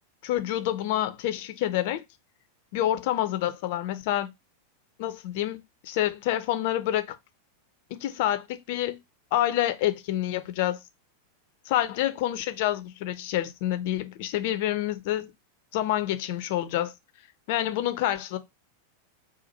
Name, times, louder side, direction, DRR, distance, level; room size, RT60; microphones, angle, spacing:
voice 1, 0.2-2.0 2.7-4.3 5.0-7.2 8.0-9.0 9.3-10.8 11.6-15.3 15.7-16.9 17.5-18.4, left 13 dB, 50° left, 0.6 m, -27 dB
4.3 x 2.5 x 4.0 m
figure-of-eight pair, 90°, 0 cm